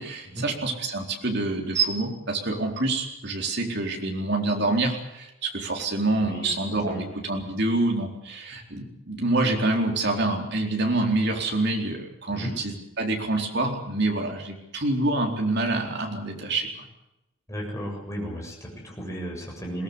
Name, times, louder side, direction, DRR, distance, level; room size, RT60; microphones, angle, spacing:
voice 1, 0.0-16.7, right 2 dB, 55° right, 2 dB, 4.2 m, -26 dB
voice 2, 6.2-6.5 6.9-7.0 12.3-12.5 17.5-19.8, equal, 15° left, -1 dB, 7.5 m, -34 dB
22.0 x 19.0 x 8.3 m, 0.90 s
head